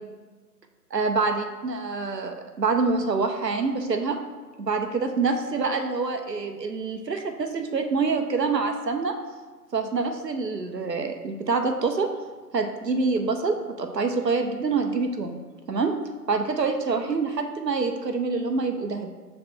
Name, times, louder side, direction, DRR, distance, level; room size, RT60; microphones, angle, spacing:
voice 1, 0.9-4.2 4.6-9.1 9.7-12.1 12.5-15.4 15.7-15.9 16.3-19.1, right 4 dB, 80° right, 5 dB, 0.8 m, -26 dB
6.6 x 3.3 x 4.3 m, 1.4 s
figure-of-eight pair, 170°, 49 cm